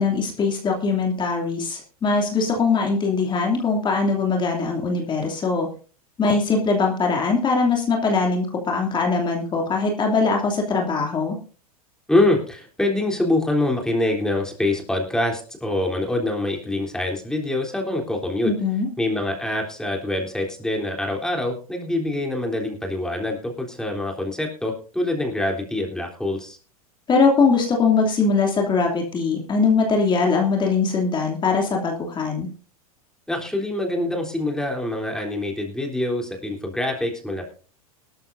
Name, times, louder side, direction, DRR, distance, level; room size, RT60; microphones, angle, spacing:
voice 1, 0.0-5.7 6.2-11.4 18.4-18.9 27.1-32.5, left 4 dB, 25° left, 0 dB, 2.8 m, -21 dB
voice 2, 12.1-18.5 19.0-26.6 33.3-37.4, left 1 dB, 5° left, 1 dB, 3.5 m, -25 dB
18.5 x 13.0 x 2.7 m, 0.39 s
hypercardioid pair, 110°, 19 cm